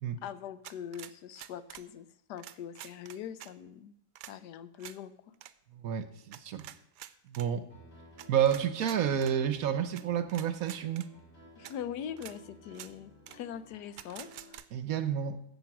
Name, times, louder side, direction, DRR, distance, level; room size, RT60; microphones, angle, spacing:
voice 1, 0.2-3.9 4.3-5.3 11.6-14.3, left 9 dB, 80° left, 14 dB, 1.2 m, -42 dB
sound 1, 0.6-1.9 2.4-3.5 4.2-4.3 4.8-5.0 5.3-5.5 6.3-7.5 8.2-9.3 10.0-10.1 10.3-11.1 11.6-11.7 12.2-12.4 12.7-12.9 13.3-13.4 14.0-14.7, right 12 dB, 85° right, 1.2 m, -47 dB
voice 2, 5.7-6.7 7.3-7.7 8.3-11.0 14.7-15.4, right 9 dB, 65° right, 12 dB, 1.1 m, -30 dB
Piano, 7.7-14.5, left 1 dB, 50° left, 3.4 m, -56 dB
10.5 x 7.7 x 6.0 m, 0.79 s
omnidirectional pair, 1.8 m